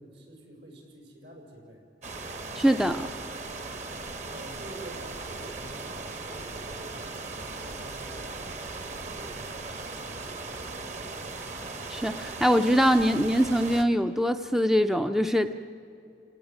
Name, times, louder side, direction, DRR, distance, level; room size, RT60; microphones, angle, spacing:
voice 1, 0.0-1.8 3.6-3.8 4.3-7.2 7.6-11.2, right 1 dB, 75° right, 1 dB, 6.4 m, -49 dB
sound 1, 2.0-13.8, right 3 dB, 40° right, 1.4 m, -38 dB
voice 2, 2.6-3.1 11.9-15.5, equal, ahead, 8 dB, 0.5 m, -23 dB
29.5 x 18.5 x 9.1 m, 2.7 s
head